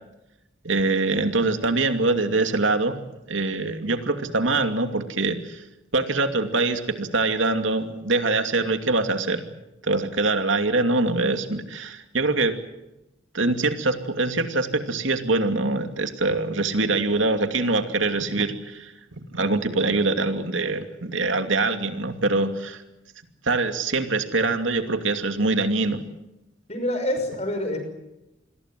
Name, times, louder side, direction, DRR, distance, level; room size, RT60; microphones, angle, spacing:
voice 1, 0.6-3.0 3.3-5.6 5.9-9.4 9.8-12.5 13.3-22.8 23.4-26.0, right 3 dB, 80° right, 7 dB, 2.6 m, -24 dB
voice 2, 26.7-27.8, left 1 dB, 35° left, 7 dB, 6.1 m, -26 dB
28.0 x 21.0 x 7.7 m, 0.93 s
head